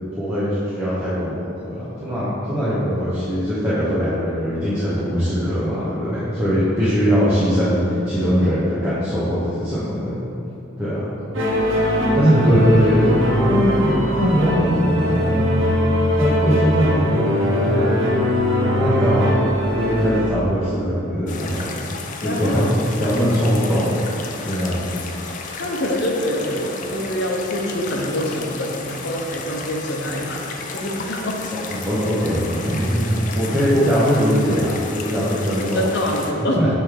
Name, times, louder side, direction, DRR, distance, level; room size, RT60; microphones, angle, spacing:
voice 1, 0.2-10.1 10.8-11.1 12.1-15.7 16.2-18.0 18.8-19.3 19.7-21.7 22.2-22.6 23.0-23.9 24.5-24.9 31.7-35.8 36.6-36.7, equal, 10° right, -13 dB, 1.0 m, -21 dB
sound 1, 11.3-20.3, equal, 70° right, 0.8 m, -20 dB
sound 2, 21.3-36.3, left 4 dB, 40° left, 0.4 m, -33 dB
voice 2, 22.2-22.6 25.6-31.4 35.7-36.6, equal, 55° left, 0 dB, 0.8 m, -25 dB
7.6 x 3.4 x 3.9 m, 2.7 s
head